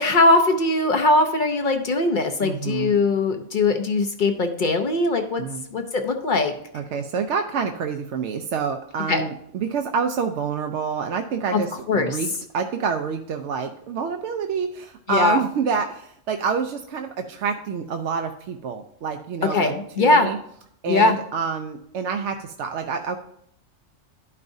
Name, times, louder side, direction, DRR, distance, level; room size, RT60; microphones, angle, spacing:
voice 1, 0.0-5.4 5.7-6.5 9.1-9.2 11.5-11.6 11.9-12.2 15.1-15.4 19.5-20.3 20.9-21.2, left 2 dB, 50° left, 5 dB, 0.7 m, -20 dB
voice 2, 2.4-2.9 5.4-5.6 6.7-20.4 20.8-23.2, right 6 dB, 70° right, 5 dB, 0.8 m, -27 dB
12.0 x 5.4 x 2.6 m, 0.69 s
omnidirectional pair, 1.3 m